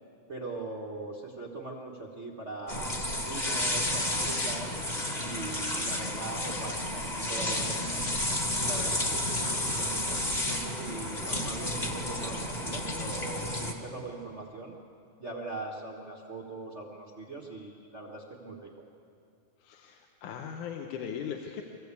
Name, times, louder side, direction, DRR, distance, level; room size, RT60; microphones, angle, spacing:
voice 1, 0.3-4.7 5.2-8.0 8.6-14.8 15.2-18.7, right 3 dB, 60° right, -1 dB, 0.7 m, -41 dB
sound 1, 2.7-13.7, left 1 dB, 25° left, 1.1 m, -31 dB
voice 2, 19.6-21.6, left 8 dB, 80° left, 3 dB, 2.4 m, -38 dB
23.5 x 15.0 x 8.3 m, 2.6 s
omnidirectional pair, 3.5 m